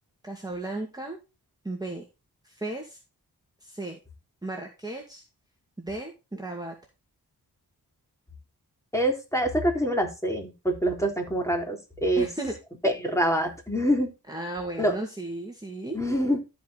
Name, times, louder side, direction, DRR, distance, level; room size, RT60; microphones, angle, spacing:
voice 1, 0.2-1.2 1.6-2.0 2.4-3.0 3.6-4.0 4.4-5.2 5.8-6.7 12.2-12.5 14.3-16.0, right 2 dB, 10° right, 1 dB, 2.2 m, -35 dB
voice 2, 8.9-12.3 12.8-14.1 14.8-15.0 15.9-16.4, equal, 10° left, 1 dB, 3.4 m, -25 dB
13.5 x 5.2 x 4.1 m, 0.28 s
cardioid pair, 60°, 39 cm